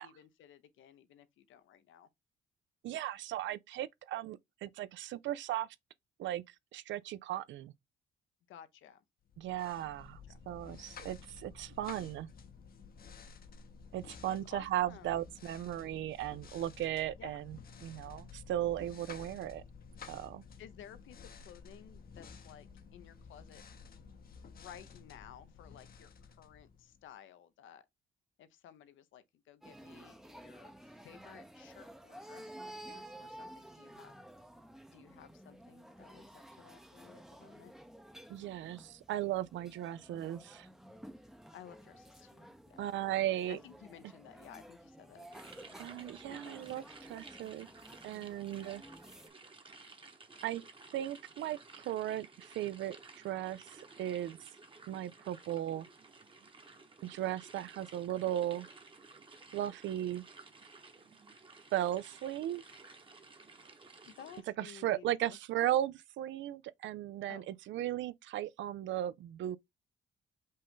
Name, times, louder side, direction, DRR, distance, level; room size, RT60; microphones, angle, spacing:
voice 1, 0.0-2.1 8.5-9.0 10.3-10.4 14.3-15.2 17.2-17.4 20.6-22.7 22.9-23.6 24.5-27.8 28.4-34.1 34.9-37.7 41.5-42.9 43.2-45.3 45.6-45.8 46.3-47.1 64.1-65.4 67.3-67.5, left 9 dB, 80° left, 0.7 m, -55 dB
voice 2, 2.8-5.7 6.2-6.4 6.7-7.7 9.4-10.2 10.5-12.3 13.9-19.6 20.1-20.4 38.3-40.7 42.8-43.6 45.8-47.7 48.0-48.8 50.4-50.6 50.9-53.0 53.2-54.4 54.9-55.9 57.0-58.7 59.5-60.2 61.7-62.6 64.6-69.6, right 13 dB, 70° right, 0.4 m, -36 dB
sound 1, 9.3-27.1, left 5 dB, 50° left, 0.8 m, -53 dB
sound 2, 29.6-49.3, right 1 dB, ahead, 0.6 m, -53 dB
sound 3, 45.3-64.4, right 3 dB, 25° right, 1.0 m, -55 dB
5.5 x 2.6 x 3.6 m
cardioid pair, 90°, 20 cm